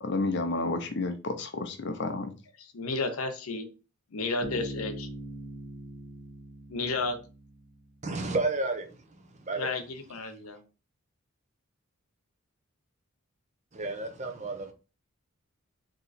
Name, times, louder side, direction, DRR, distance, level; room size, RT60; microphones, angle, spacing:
voice 1, 0.0-2.3, left 2 dB, 55° left, 0.7 m, -31 dB
voice 2, 2.6-3.7 4.1-5.1 6.7-7.2 9.6-10.6, left 3 dB, 90° left, 0.8 m, -32 dB
Bass guitar, 4.4-8.1, right 1 dB, 60° right, 1.2 m, -42 dB
voice 3, 8.0-8.9 9.4-9.7 13.7-14.7, right 3 dB, 35° right, 0.7 m, -31 dB
3.8 x 2.9 x 4.0 m
head